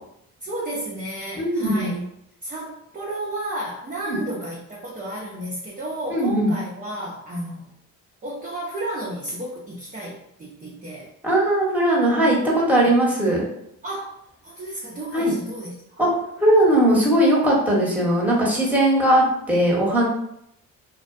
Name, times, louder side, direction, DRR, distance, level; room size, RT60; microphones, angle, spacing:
voice 1, 0.4-2.0 2.4-7.8 8.2-11.1 12.7-12.9 13.8-14.2 14.4-16.0, right 1 dB, 20° right, -5 dB, 0.6 m, -32 dB
voice 2, 1.4-2.0 4.1-4.2 6.1-6.5 11.2-13.4 15.1-15.3 16.0-16.1 16.4-20.0, right 1 dB, 5° right, -4 dB, 1.0 m, -19 dB
2.3 x 2.2 x 2.5 m, 0.76 s
supercardioid pair, 55°, 40 cm